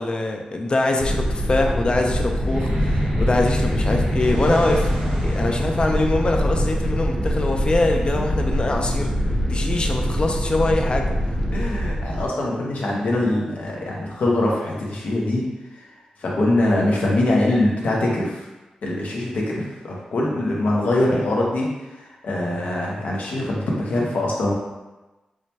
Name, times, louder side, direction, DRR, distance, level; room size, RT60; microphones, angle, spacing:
voice 1, 0.0-4.9 5.2-9.1 9.5-11.3, left 2 dB, 40° left, 2 dB, 0.5 m, -23 dB
sound 1, 1.0-12.3, equal, ahead, 0.7 m, -24 dB
sound 2, 2.4-9.0, equal, 80° right, 1.3 m, -30 dB
voice 2, 11.5-15.4 15.7-15.8 16.2-18.5 18.8-24.5, left 1 dB, 75° left, -3 dB, 0.8 m, -23 dB
4.8 x 2.2 x 2.8 m, 1.1 s
wide cardioid pair, 85°, 3 cm